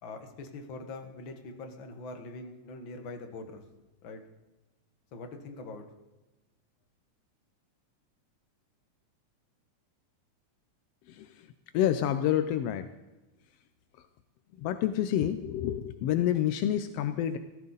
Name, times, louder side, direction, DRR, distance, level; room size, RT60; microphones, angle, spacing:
voice 1, 0.0-3.6 4.0-4.2 5.1-5.9, left 3 dB, 50° left, 5 dB, 1.7 m, -43 dB
voice 2, 11.1-12.9 14.0-14.1 14.6-17.4, left 11 dB, 80° left, 10 dB, 1.4 m, -28 dB
17.0 x 14.0 x 4.0 m, 1.1 s
omnidirectional pair, 3.4 m